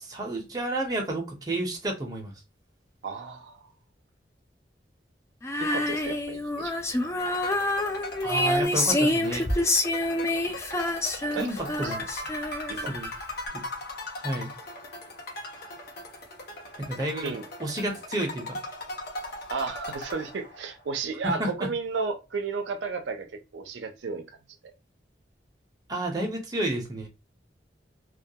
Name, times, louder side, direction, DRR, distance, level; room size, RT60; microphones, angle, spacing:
voice 1, 0.0-2.3 8.2-9.5 11.4-12.0 12.9-13.1 13.5-13.6 14.2-14.5 16.9-17.3 17.6-18.6 21.2-21.7 25.9-27.1, right 1 dB, 20° right, 0.6 m, -30 dB
voice 2, 3.0-3.6 5.6-7.1 11.3-11.5 11.8-11.9 12.7-12.9 17.2-17.4 19.5-23.3 23.5-24.2, right 4 dB, 85° right, 0.5 m, -33 dB
Female singing, 5.4-12.9, left 1 dB, 15° left, 0.3 m, -27 dB
sound 1, 7.2-20.8, left 1 dB, 60° left, 0.8 m, -39 dB
2.3 x 2.2 x 2.7 m
head